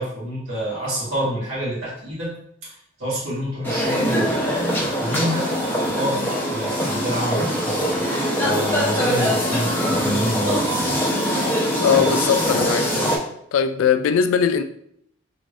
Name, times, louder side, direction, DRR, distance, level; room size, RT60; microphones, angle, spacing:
voice 1, 0.0-2.3 2.6-5.5 5.9-11.0 11.7-11.9, right 1 dB, 85° right, 1.4 m, -28 dB
sound 1, 3.6-13.2, equal, 10° left, 0.6 m, -22 dB
voice 2, 11.8-13.2 13.5-14.6, left 7 dB, 85° left, 0.3 m, -20 dB
3.5 x 2.4 x 3.1 m
head